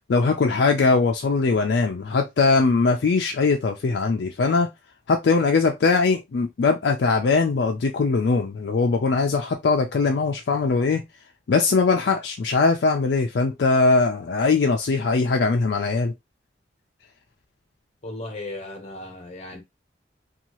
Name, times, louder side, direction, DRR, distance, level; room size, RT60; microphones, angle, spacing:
voice 1, 0.0-4.7 5.1-11.0 11.5-16.1, left 4 dB, 70° left, 0.4 m, -21 dB
voice 2, 18.0-19.6, left 2 dB, 35° left, 0.8 m, -36 dB
2.7 x 2.3 x 2.9 m
head